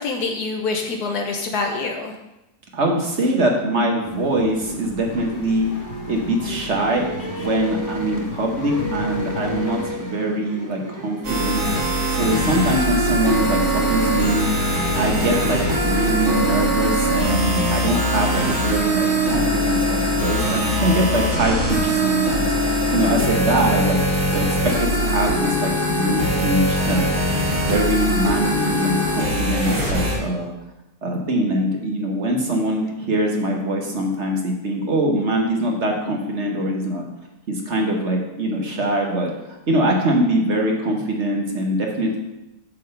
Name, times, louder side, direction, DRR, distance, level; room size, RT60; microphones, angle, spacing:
voice 1, 0.0-2.1, left 3 dB, 75° left, 3 dB, 1.4 m, -25 dB
voice 2, 2.7-5.7 6.1-7.1 7.4-14.5 14.9-24.0 24.3-27.2 27.6-30.5 31.0-37.0 37.5-39.3 39.7-42.2, right 1 dB, 50° right, 1 dB, 1.3 m, -23 dB
sound 1, 4.0-9.9, left 2 dB, 45° left, 0.7 m, -35 dB
sound 2, 5.1-16.8, equal, 20° right, 0.5 m, -34 dB
sound 3, 11.2-30.2, equal, 70° right, 2.5 m, -21 dB
8.6 x 3.7 x 6.7 m, 0.93 s
omnidirectional pair, 1.7 m